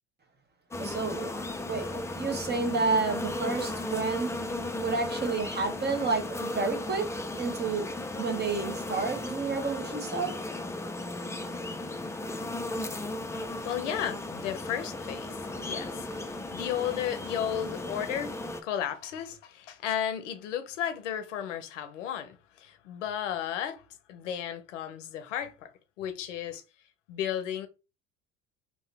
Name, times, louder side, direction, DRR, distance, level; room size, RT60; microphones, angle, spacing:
sound 1, 0.7-18.6, left 2 dB, 10° left, 0.4 m, -36 dB
voice 1, 0.8-1.3 1.7-4.3 4.8-7.1 7.4-7.8 8.2-10.3, right 4 dB, 30° right, 1.1 m, -30 dB
voice 2, 13.6-18.4 18.6-23.8 24.1-25.7 26.0-26.6 27.1-27.7, left 10 dB, 85° left, 0.6 m, -34 dB
2.8 x 2.7 x 3.2 m
hypercardioid pair, 65°, 36 cm